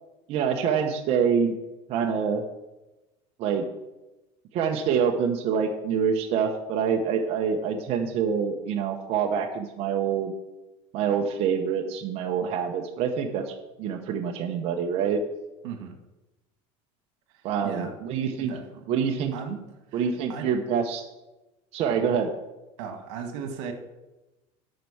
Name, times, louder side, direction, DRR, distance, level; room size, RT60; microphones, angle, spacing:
voice 1, 0.3-1.6 1.9-2.4 3.4-3.7 4.5-10.3 10.9-13.5 13.8-15.2 17.4-18.5 18.9-19.3 19.9-21.0 21.7-22.3, right 7 dB, 45° right, 2 dB, 0.9 m, -26 dB
voice 2, 15.6-15.9 17.3-17.9 18.4-18.9 19.3-19.6 19.9-20.5 22.8-23.7, right 7 dB, 80° right, 6 dB, 1.7 m, -37 dB
11.5 x 4.6 x 7.1 m, 1.0 s
cardioid pair, 160°, 15 cm